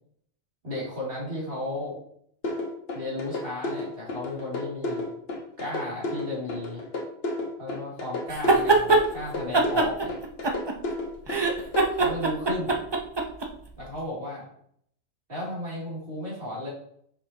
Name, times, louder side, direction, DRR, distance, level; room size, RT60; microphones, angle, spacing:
voice 1, 0.6-2.0 2.9-5.1 5.6-6.8 7.6-10.1 11.9-12.8 13.8-14.4 15.3-16.7, left 1 dB, 50° right, -6 dB, 3.0 m, -34 dB
sound 1, 2.4-11.8, left 2 dB, 55° left, 1.3 m, -32 dB
sound 2, 8.3-9.0 9.5-10.9 11.3-13.5, right 3 dB, 30° right, 0.6 m, -22 dB
6.8 x 5.2 x 2.8 m, 0.66 s
omnidirectional pair, 1.2 m